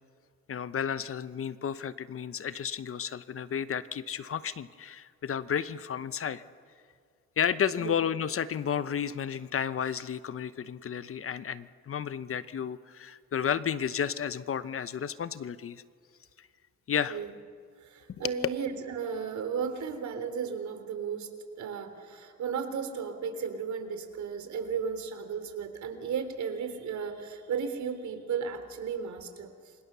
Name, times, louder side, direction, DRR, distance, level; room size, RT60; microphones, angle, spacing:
voice 1, 0.5-6.4 7.4-15.8 16.9-17.2 18.2-18.3, left 8 dB, 45° left, 14 dB, 0.9 m, -32 dB
voice 2, 17.8-21.3 21.6-29.5, right 6 dB, 70° right, 8 dB, 3.5 m, -34 dB
29.0 x 25.0 x 6.9 m, 2.2 s
cardioid pair, 90°, 30 cm